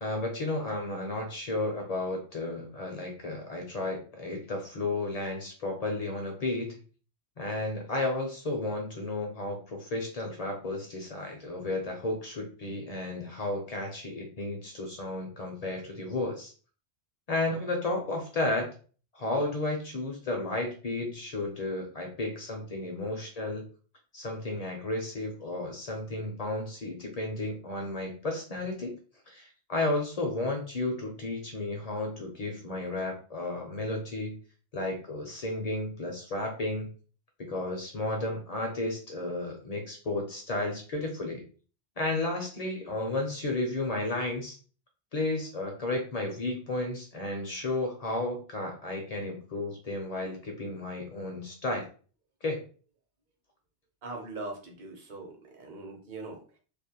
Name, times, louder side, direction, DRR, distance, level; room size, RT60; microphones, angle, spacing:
voice 1, 0.0-6.8 7.4-16.5 17.3-18.7 19.1-23.6 24.1-28.9 29.3-34.4 34.7-36.9 37.4-41.4 42.0-44.6 45.1-51.9 52.4-52.6, left 2 dB, 50° left, 2 dB, 0.4 m, -33 dB
voice 2, 54.0-56.6, right 2 dB, 50° right, 1 dB, 0.7 m, -41 dB
2.4 x 2.1 x 2.8 m, 0.39 s
omnidirectional pair, 1.1 m